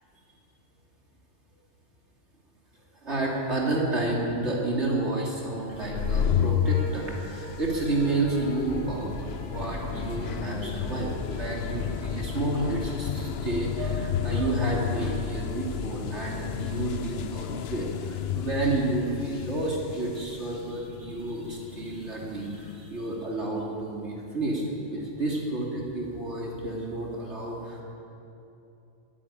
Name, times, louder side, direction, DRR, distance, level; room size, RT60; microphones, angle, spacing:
voice 1, 3.0-9.1 9.5-24.6 24.9-27.8, right 2 dB, 70° right, -3 dB, 3.3 m, -30 dB
sound 1, 5.7-23.1, left 8 dB, 60° left, 1.0 m, -32 dB
sound 2, 6.6-12.2, left 1 dB, 35° left, 5.2 m, -41 dB
22.0 x 15.0 x 8.9 m, 2.9 s
omnidirectional pair, 1.2 m